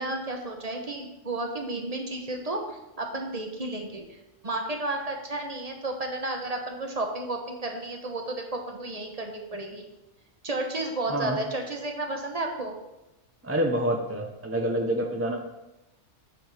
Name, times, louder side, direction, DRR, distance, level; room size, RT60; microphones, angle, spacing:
voice 1, 0.0-9.8 10.4-12.8, right 2 dB, 35° right, 2 dB, 1.0 m, -32 dB
voice 2, 13.4-15.4, right 1 dB, 15° right, 2 dB, 0.6 m, -27 dB
9.2 x 6.1 x 3.3 m, 0.97 s
omnidirectional pair, 1.2 m